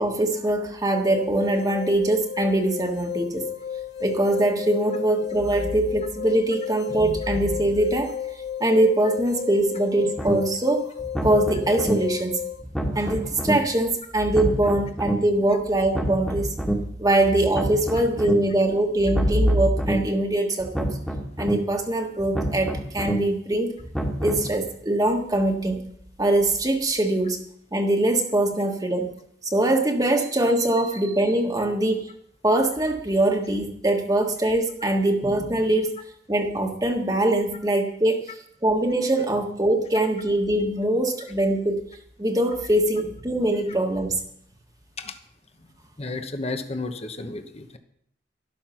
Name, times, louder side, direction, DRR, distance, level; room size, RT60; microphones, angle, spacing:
voice 1, 0.0-3.4 4.0-8.1 8.6-10.9 11.2-12.4 12.9-16.5 17.0-20.9 21.4-23.7 24.2-25.8 26.2-27.4 27.7-29.1 29.4-32.1 32.4-35.9 36.3-38.2 38.6-41.8 42.2-44.2, right 1 dB, 20° right, 2 dB, 1.5 m, -22 dB
sound 1, 0.9-12.6, left 9 dB, 65° left, 1.2 m, -34 dB
sound 2, 10.2-10.3 11.0-11.9 12.6-13.5 14.2-15.1 15.8-16.7 17.4-18.3 19.0-19.9 20.6-21.5 22.2-23.1 23.8-24.5, equal, 5° left, 1.7 m, -28 dB
voice 2, 46.0-47.8, left 3 dB, 35° left, 7 dB, 1.1 m, -33 dB
13.0 x 12.0 x 5.8 m, 0.70 s
head